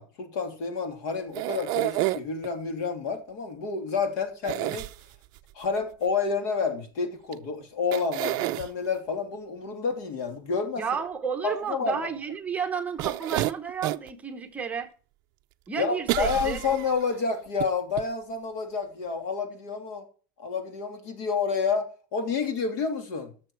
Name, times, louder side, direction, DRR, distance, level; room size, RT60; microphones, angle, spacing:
voice 1, 0.0-4.9 5.5-10.8 11.4-12.1 15.8-20.0 20.4-23.3, left 5 dB, 60° left, 3.1 m, -29 dB
sound 1, 1.3-2.5 4.4-5.4 7.3-7.4 7.9-8.7 13.0-14.1 14.6-14.7 16.1-17.1 17.6-17.7 18.0-18.1, right 18 dB, 40° right, 0.5 m, -29 dB
voice 2, 10.8-14.9 15.7-16.6, right 6 dB, 15° right, 0.9 m, -32 dB
17.0 x 7.0 x 4.6 m
supercardioid pair, 170°, 11 cm